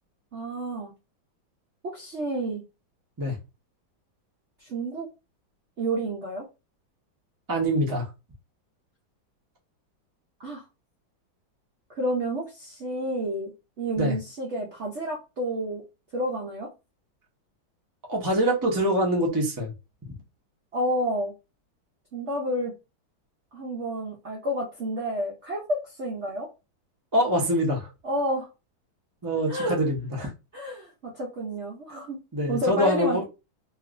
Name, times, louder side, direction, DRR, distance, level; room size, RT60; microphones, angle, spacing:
voice 1, 0.3-0.9 1.8-2.6 4.6-5.1 5.8-6.4 10.4-10.6 12.0-15.8 16.1-16.7 20.7-21.3 22.1-22.7 23.5-26.5 28.0-28.5 29.5-29.8 30.5-32.2 32.5-33.2, right 1 dB, 65° right, 0.7 m, -30 dB
voice 2, 7.5-8.1 14.0-14.1 18.1-19.7 27.1-27.9 29.2-30.3 32.3-33.2, equal, 25° right, 0.4 m, -24 dB
3.1 x 3.0 x 2.5 m
omnidirectional pair, 2.2 m